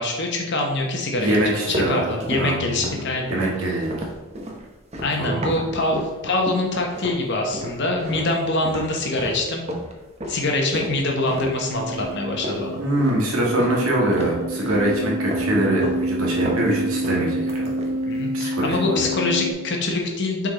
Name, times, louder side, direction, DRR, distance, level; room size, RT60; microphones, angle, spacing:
voice 1, 0.0-3.4 5.0-9.7 10.3-12.8 18.1-20.5, left 2 dB, 50° left, 1 dB, 1.1 m, -24 dB
voice 2, 1.2-2.1 2.4-2.9 3.3-3.9 5.2-5.5 12.8-17.7 18.3-19.0, right 1 dB, 75° right, -3 dB, 1.7 m, -23 dB
sound 1, 1.3-6.2 6.5-7.2 7.5-13.8 14.1-14.9 15.3-16.0 16.3-18.2 18.5-18.8, equal, 30° right, 0.7 m, -33 dB
sound 2, 11.1-19.5, equal, 90° right, 0.5 m, -28 dB
6.1 x 3.8 x 4.1 m, 1.2 s
head